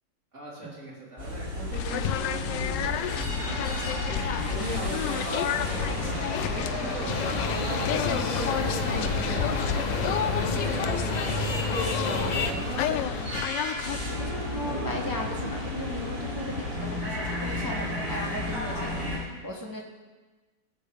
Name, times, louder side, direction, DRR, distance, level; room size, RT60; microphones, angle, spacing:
voice 1, 0.3-13.1, right 1 dB, 70° right, -8 dB, 4.8 m, -38 dB
sound 1, 1.2-19.2, left 1 dB, 30° right, 5.1 m, -32 dB
sound 2, 1.7-14.0, left 10 dB, 85° left, 1.2 m, -32 dB
sound 3, 7.1-12.5, left 3 dB, 55° left, 0.4 m, -30 dB
voice 2, 13.8-19.8, left 1 dB, 15° right, -1 dB, 1.0 m, -37 dB
18.5 x 8.1 x 3.5 m, 1.3 s
omnidirectional pair, 1.9 m